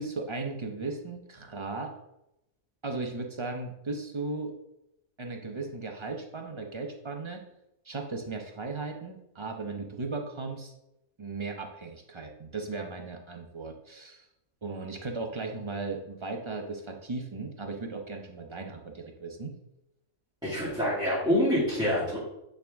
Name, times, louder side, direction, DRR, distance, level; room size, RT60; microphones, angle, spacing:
voice 1, 0.0-1.9 2.8-4.5 5.2-7.4 7.8-10.7 11.2-14.2 14.6-19.5, right 3 dB, 40° right, 2 dB, 0.4 m, -36 dB
voice 2, 20.4-22.2, equal, 5° right, -10 dB, 2.0 m, -26 dB
8.7 x 3.4 x 3.5 m, 0.85 s
omnidirectional pair, 1.4 m